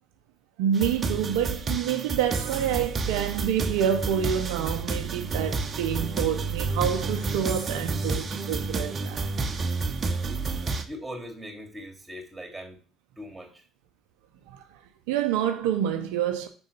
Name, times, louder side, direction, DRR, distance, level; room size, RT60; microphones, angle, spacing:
voice 1, 0.6-9.3 14.5-14.8 15.1-16.5, right 9 dB, 80° right, 0.6 m, -27 dB
sound 1, 0.7-10.8, right 4 dB, 40° right, 0.8 m, -30 dB
voice 2, 10.9-12.8 13.2-13.6, equal, 15° right, 2.5 m, -40 dB
6.1 x 3.7 x 5.4 m
supercardioid pair, 75°, 0 cm